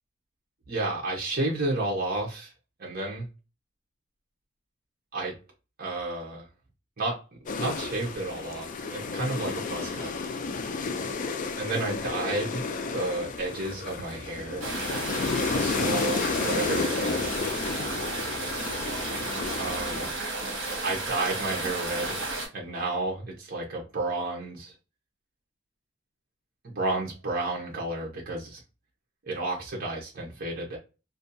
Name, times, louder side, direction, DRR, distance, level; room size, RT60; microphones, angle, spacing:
voice 1, 0.7-2.5 2.8-3.3 5.1-5.4 5.8-6.5 7.0-7.2 7.5-10.1 11.6-12.6 12.9-14.7 15.5-17.2 19.6-20.1 20.8-22.2 22.5-24.7 26.6-28.6 29.2-30.8, right 2 dB, 45° right, 0.8 m, -31 dB
sound 1, 7.5-20.1, left 4 dB, 40° left, 0.3 m, -32 dB
sound 2, 14.6-22.5, right 2 dB, 65° right, 1.1 m, -33 dB
2.6 x 2.2 x 2.6 m
head